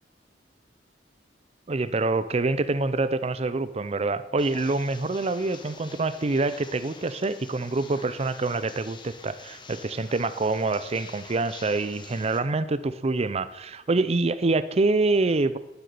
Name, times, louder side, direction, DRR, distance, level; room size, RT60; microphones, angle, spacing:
voice 1, 1.7-15.6, right 3 dB, 35° right, 13 dB, 0.5 m, -26 dB
sound 1, 4.4-12.4, left 4 dB, 25° left, 1.2 m, -46 dB
9.6 x 8.0 x 9.4 m, 1.0 s
head